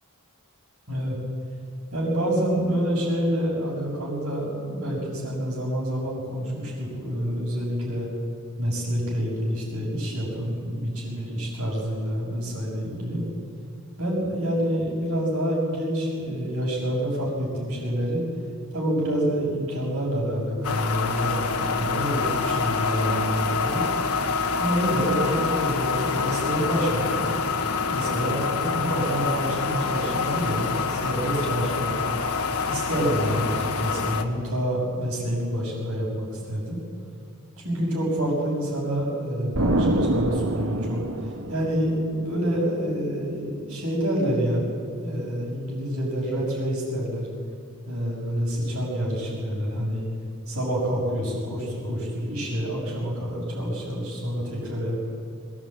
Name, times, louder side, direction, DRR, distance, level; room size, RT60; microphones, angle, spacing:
voice 1, 1.9-8.1 8.6-13.2 14.0-18.2 18.7-23.8 24.6-27.2 27.9-31.9 32.7-36.8 37.6-44.6 45.0-47.3 47.9-50.0 50.5-55.0, equal, 65° right, -9 dB, 6.3 m, -27 dB
sound 1, 20.6-34.2, left 5 dB, 85° left, 1.4 m, -26 dB
Explosion, 39.5-42.2, right 1 dB, 80° right, 1.6 m, -25 dB
21.5 x 18.5 x 8.7 m, 2.4 s
head